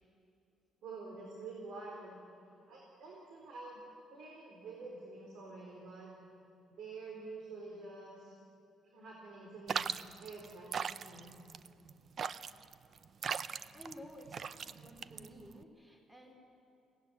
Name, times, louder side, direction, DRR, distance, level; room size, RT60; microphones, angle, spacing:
voice 1, 0.8-2.2 2.7-3.8 4.1-6.1 6.7-8.4 8.9-9.9 10.2-11.5, right 3 dB, 70° right, -1 dB, 4.1 m, -48 dB
sound 1, 9.7-15.6, right 7 dB, 50° right, 0.5 m, -39 dB
voice 2, 13.5-16.3, equal, 5° right, 2 dB, 3.4 m, -53 dB
22.0 x 18.0 x 9.4 m, 2.7 s
cardioid pair, 110°, 0 cm